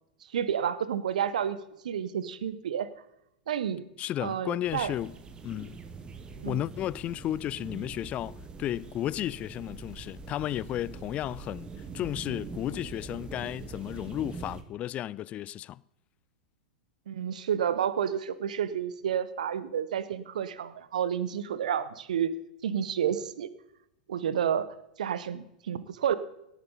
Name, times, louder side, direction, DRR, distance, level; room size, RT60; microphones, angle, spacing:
voice 1, 0.3-1.6 1.8-2.9 3.5-3.9 4.2-4.9 6.4-6.6 17.1-22.3 22.6-23.5 24.1-24.7 25.0-26.2, right 9 dB, 65° right, 1.0 m, -30 dB
voice 2, 4.0-5.1 5.4-5.8 6.4-15.8, left 12 dB, 30° left, 0.3 m, -33 dB
sound 1, 4.7-14.6, right 4 dB, 20° right, 1.6 m, -43 dB
18.0 x 9.1 x 4.1 m
figure-of-eight pair, 95°, 4 cm